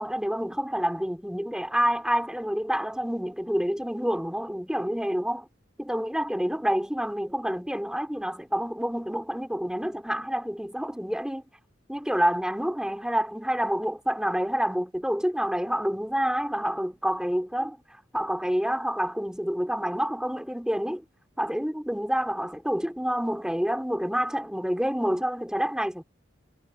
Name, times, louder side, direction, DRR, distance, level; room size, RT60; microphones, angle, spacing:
voice 1, 0.0-5.5 5.8-11.4 11.9-17.8 18.1-21.0 21.4-26.0, equal, 5° right, 4.2 m, -28 dB
head